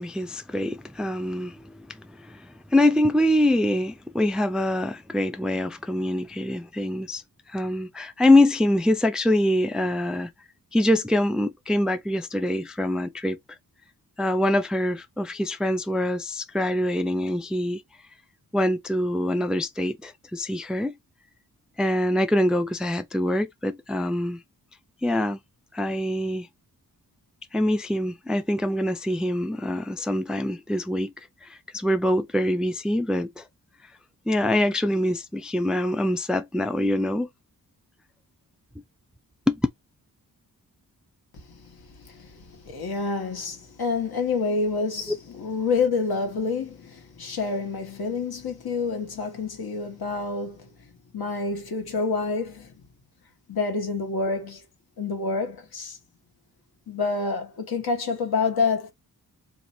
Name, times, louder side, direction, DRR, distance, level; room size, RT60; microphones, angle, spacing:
voice 1, 0.0-7.2 7.5-10.3 10.7-13.4 14.2-17.8 18.5-21.0 21.8-24.4 25.0-25.4 25.7-26.5 27.5-31.1 31.4-33.4 34.3-37.3 39.5-39.6, left 1 dB, ahead, 0.3 m, -24 dB
voice 2, 41.3-50.7 51.1-52.7 53.5-54.6 55.0-56.0 56.9-58.9, left 4 dB, 80° left, 1.3 m, -28 dB
2.8 x 2.4 x 4.1 m
wide cardioid pair, 100°, 37 cm